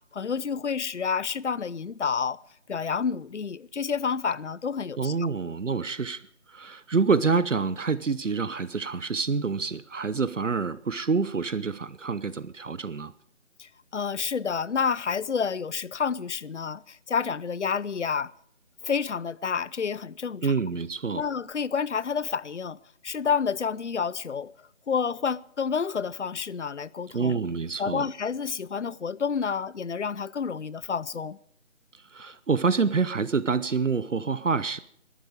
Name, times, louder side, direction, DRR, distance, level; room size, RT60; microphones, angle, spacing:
voice 1, 0.1-2.4 2.7-5.3 13.6-18.3 18.8-20.5 21.1-22.8 23.0-24.5 24.9-27.4 27.8-31.4, left 6 dB, 70° left, 0.7 m, -29 dB
voice 2, 5.0-6.2 6.5-13.1 20.4-21.2 27.1-28.1 31.9-34.8, right 5 dB, 75° right, 0.9 m, -27 dB
21.5 x 12.5 x 4.9 m
figure-of-eight pair, 160°, 37 cm